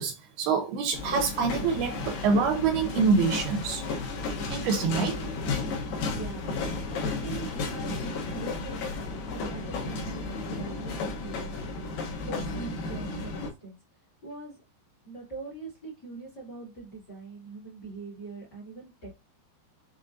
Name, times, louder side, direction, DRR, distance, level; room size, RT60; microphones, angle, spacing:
voice 1, 0.0-3.9 4.5-5.2, right 5 dB, 80° right, 2.4 m, -26 dB
sound 1, 0.9-13.5, left 3 dB, 70° left, 2.4 m, -33 dB
voice 2, 6.1-11.9 12.2-13.8 14.2-14.6 15.0-19.1, right 3 dB, 35° left, 1.7 m, -43 dB
6.6 x 2.9 x 2.6 m
omnidirectional pair, 4.9 m